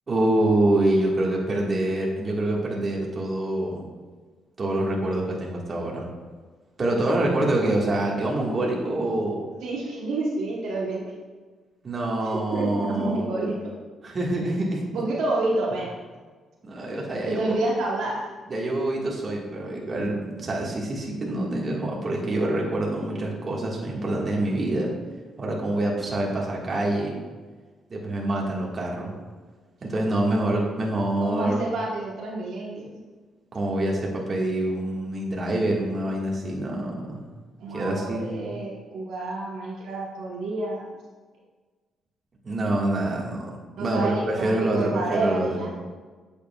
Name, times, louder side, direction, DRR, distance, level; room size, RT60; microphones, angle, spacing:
voice 1, 0.1-3.9 4.6-6.1 6.8-9.4 11.8-13.5 14.0-14.9 16.6-17.6 18.5-24.9 25.4-27.1 27.9-29.1 29.8-31.6 33.5-37.3 37.7-38.5 42.4-45.6, right 1 dB, 35° right, -2 dB, 1.6 m, -26 dB
voice 2, 9.6-11.0 12.3-13.7 14.9-15.9 17.3-18.2 31.2-33.0 37.6-40.9 43.8-45.7, right 2 dB, 80° right, -3 dB, 1.1 m, -29 dB
8.3 x 6.7 x 2.3 m, 1.4 s
cardioid pair, 90°, 0 cm